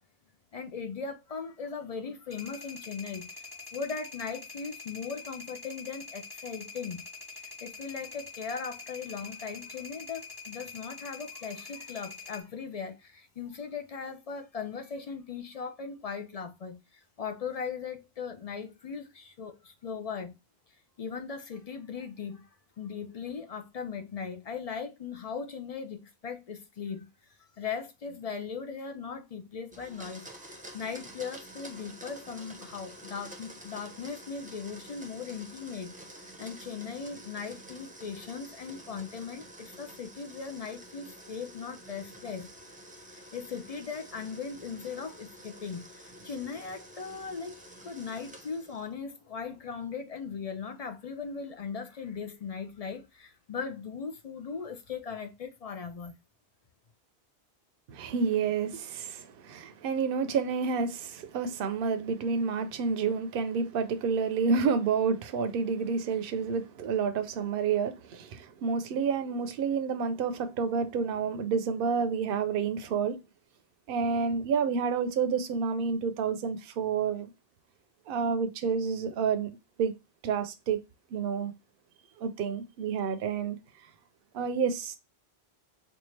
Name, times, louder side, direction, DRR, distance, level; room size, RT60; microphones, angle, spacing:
voice 1, 0.5-7.0 7.3-20.4 21.0-22.5 22.8-27.1 27.6-35.9 36.4-42.5 43.1-47.6 47.8-56.2, left 5 dB, 50° left, 0.5 m, -39 dB
sound 1, 2.3-12.4, left 4 dB, 25° left, 1.0 m, -45 dB
Domestic sounds home sounds, 29.7-48.9, right 1 dB, 10° right, 0.6 m, -49 dB
voice 2, 57.9-73.2 73.9-77.3 78.1-79.5 79.8-79.9 80.2-80.8 81.1-81.5 82.2-83.6 84.3-85.0, right 5 dB, 65° right, 0.8 m, -29 dB
4.4 x 2.4 x 3.1 m
omnidirectional pair, 1.1 m